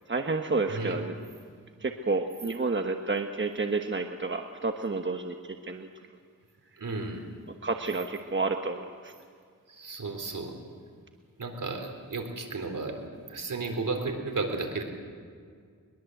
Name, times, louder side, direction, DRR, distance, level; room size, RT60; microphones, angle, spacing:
voice 1, 0.1-1.1 1.8-5.9 7.6-9.1, right 3 dB, 35° right, 5 dB, 1.3 m, -30 dB
voice 2, 6.8-7.2 9.7-10.5 11.4-14.8, right 3 dB, 70° right, 4 dB, 3.9 m, -33 dB
22.0 x 22.0 x 8.0 m, 2.1 s
wide cardioid pair, 75°, 33 cm